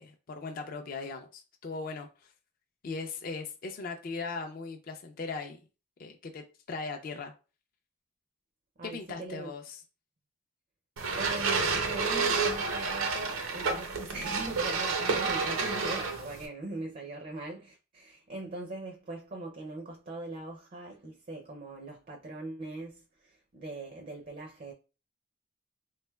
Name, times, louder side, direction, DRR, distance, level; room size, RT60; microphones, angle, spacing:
voice 1, 0.0-2.3 2.8-5.6 6.0-7.3 8.8-9.8, left 4 dB, 45° left, 0.4 m, -39 dB
voice 2, 8.8-9.5 11.2-24.7, right 2 dB, 40° right, 0.4 m, -41 dB
sound 1, 11.0-16.5, right 4 dB, 85° right, 0.6 m, -30 dB
3.6 x 3.1 x 2.2 m
head